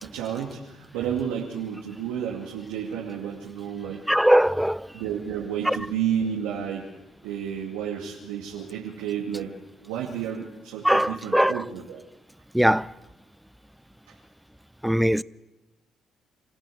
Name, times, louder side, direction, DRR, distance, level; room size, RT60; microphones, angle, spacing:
voice 1, 0.0-4.0 4.9-6.9 7.2-9.5 9.8-12.0, right 8 dB, 90° right, 2.4 m, -31 dB
voice 2, 4.1-4.9 5.7-5.8 10.8-11.6 12.5-12.9 14.8-15.2, equal, 5° right, 0.6 m, -20 dB
27.5 x 14.0 x 7.8 m
supercardioid pair, 55°, 0 cm